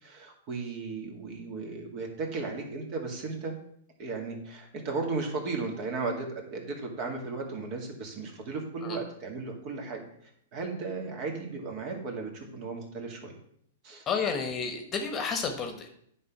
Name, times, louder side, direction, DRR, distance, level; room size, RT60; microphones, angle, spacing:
voice 1, 0.0-3.6 4.0-10.0 10.5-13.3 13.8-14.0, right 4 dB, 45° right, 1 dB, 2.2 m, -35 dB
voice 2, 14.1-15.9, left 5 dB, 25° left, 5 dB, 1.2 m, -31 dB
9.3 x 3.9 x 6.0 m, 0.68 s
hypercardioid pair, 130°, 0 cm